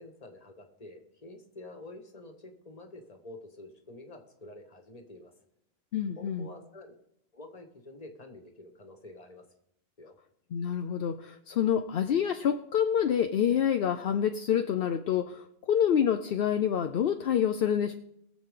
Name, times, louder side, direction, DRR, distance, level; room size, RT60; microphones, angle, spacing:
voice 1, 0.0-5.3 6.2-7.0 7.3-9.4 10.0-10.1, left 2 dB, 40° left, 4 dB, 1.6 m, -48 dB
voice 2, 5.9-6.5 10.5-17.9, left 9 dB, 70° left, 8 dB, 0.8 m, -27 dB
21.5 x 7.4 x 3.7 m, 0.78 s
omnidirectional pair, 1.1 m